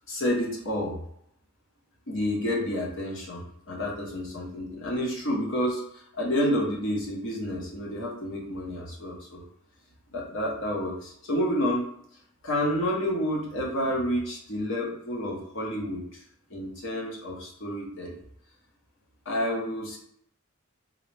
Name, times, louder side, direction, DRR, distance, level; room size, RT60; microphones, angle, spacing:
voice 1, 0.1-1.0 2.1-5.8 6.1-9.4 10.1-11.9 12.4-16.0 16.5-18.1 19.3-20.0, equal, 65° left, -1 dB, 0.9 m, -29 dB
3.8 x 2.1 x 3.2 m, 0.72 s
head